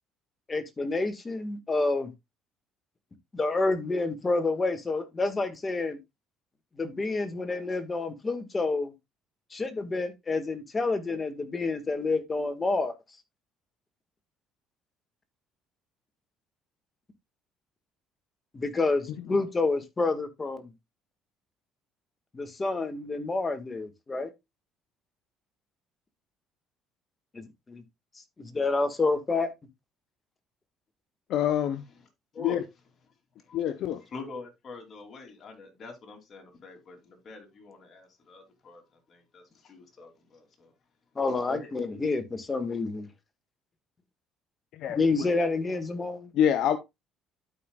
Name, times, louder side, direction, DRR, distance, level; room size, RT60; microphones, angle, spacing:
voice 1, 0.5-2.1 3.3-6.0 6.8-8.9 9.5-12.9 18.5-20.7 22.3-24.3 27.3-27.8 28.4-29.5 41.2-43.1 44.9-46.3, left 3 dB, 25° left, 1.7 m, -28 dB
voice 2, 31.3-31.8 32.4-32.6 33.5-34.0 44.7-45.0 46.3-46.8, left 9 dB, 70° left, 0.7 m, -25 dB
voice 3, 32.3-32.6 33.4-33.6 34.1-40.7 41.3-42.0, left 4 dB, 45° left, 3.2 m, -45 dB
12.5 x 5.4 x 2.4 m
supercardioid pair, 75°, 0 cm